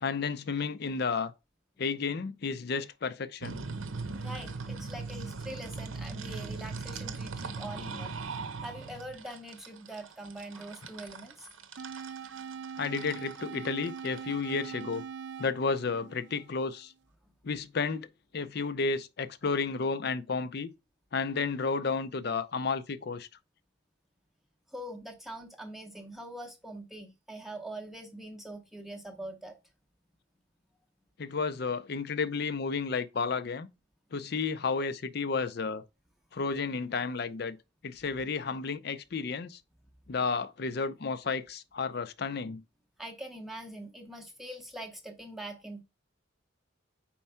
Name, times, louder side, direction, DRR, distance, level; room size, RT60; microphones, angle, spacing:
voice 1, 0.0-1.3 1.8-3.6 12.8-15.0 15.4-16.9 17.4-18.1 18.3-20.7 21.1-23.3 31.2-33.7 34.1-35.8 36.3-37.6 37.8-39.6 40.1-42.6, left 4 dB, 50° left, 0.5 m, -32 dB
sound 1, 3.4-15.0, right 4 dB, 85° right, 0.8 m, -40 dB
voice 2, 4.1-11.5 24.7-29.6 43.0-45.8, right 1 dB, ahead, 0.7 m, -43 dB
sound 2, 11.8-16.8, right 6 dB, 60° right, 0.4 m, -42 dB
4.6 x 4.3 x 5.5 m
head